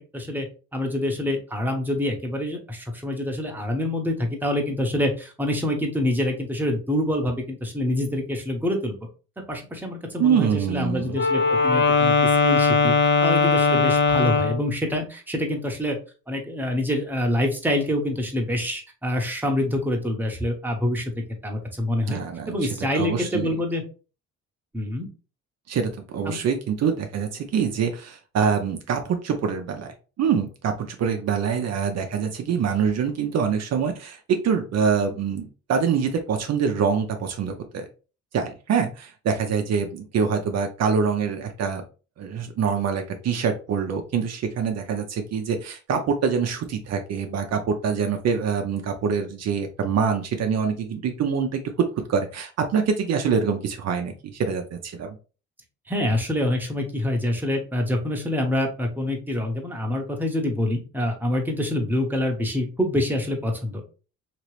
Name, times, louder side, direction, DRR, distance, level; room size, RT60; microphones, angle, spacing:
voice 1, 0.1-0.5 0.7-9.0 9.4-12.9 13.2-16.0 16.3-22.2 22.5-23.8 24.7-25.1 26.3-26.4 55.9-63.8, left 1 dB, 5° right, 1 dB, 0.9 m, -26 dB
voice 2, 10.2-11.2 22.1-22.6 22.9-23.5 25.7-37.9 38.3-41.8 42.2-51.6 52.1-55.2, right 6 dB, 60° right, 5 dB, 0.6 m, -25 dB
Wind instrument woodwind instrument, 11.1-14.7, left 4 dB, 40° left, 0.6 m, -19 dB
2.9 x 2.9 x 3.1 m, 0.35 s
cardioid pair, 90°, 30 cm